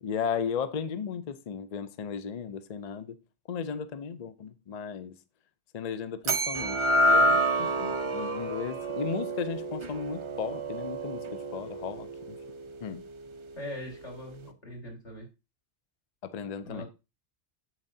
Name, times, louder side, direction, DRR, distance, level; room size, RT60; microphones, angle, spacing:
voice 1, 0.0-3.2 3.5-5.2 5.7-12.4 12.8-13.0 16.2-16.8, left 6 dB, 45° left, 0.5 m, -35 dB
Bell, 6.2-8.5, right 5 dB, 85° right, 1.2 m, -35 dB
sound 1, 6.5-13.0, equal, 35° right, 0.5 m, -28 dB
voice 2, 13.6-15.3 16.6-16.9, left 1 dB, 90° left, 4.1 m, -41 dB
8.1 x 7.2 x 2.7 m
omnidirectional pair, 1.2 m